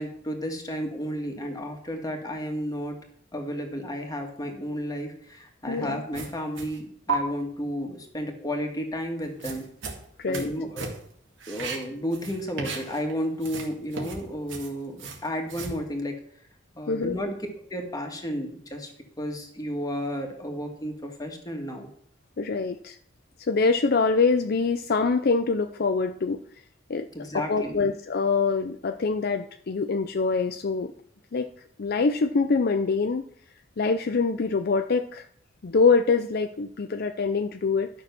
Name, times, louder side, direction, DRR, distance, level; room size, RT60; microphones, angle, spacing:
voice 1, 0.0-3.0 3.3-9.6 10.3-10.9 11.5-16.2 16.8-17.4 17.7-18.9 19.2-21.9 27.1-27.9, equal, 20° left, 2 dB, 1.9 m, -32 dB
sound 1, 6.1-6.8 7.1-7.2 9.2-10.5 10.8-11.1 11.4-13.1 13.4-15.8, right 5 dB, 85° right, 2.2 m, -35 dB
voice 2, 10.2-10.5 16.9-17.1 22.4-23.0 23.4-26.4 26.9-27.1 27.3-30.9 31.3-31.5 31.8-33.3 33.8-35.3 35.6-37.9, left 4 dB, 55° left, 8 dB, 0.5 m, -24 dB
11.5 x 6.4 x 5.9 m, 0.62 s
head